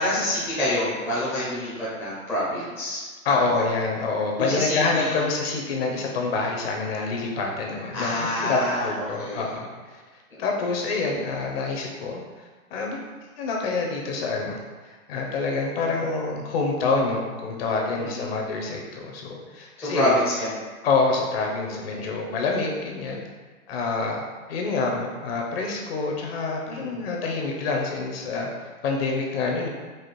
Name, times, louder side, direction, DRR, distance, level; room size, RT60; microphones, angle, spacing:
voice 1, 0.0-3.4 4.4-5.2 7.9-9.5 10.3-10.5 18.0-18.3 19.8-20.6 21.9-22.1 26.7-27.0, left 1 dB, 5° left, -9 dB, 0.6 m, -27 dB
voice 2, 3.2-8.6 8.8-10.0 10.4-12.2 12.7-13.0 13.4-14.6 14.8-20.2 20.8-23.2 23.7-24.2 24.5-28.5 28.8-29.7, left 3 dB, 40° left, 0 dB, 0.9 m, -27 dB
4.9 x 2.3 x 4.5 m, 1.4 s
hypercardioid pair, 140°, 44 cm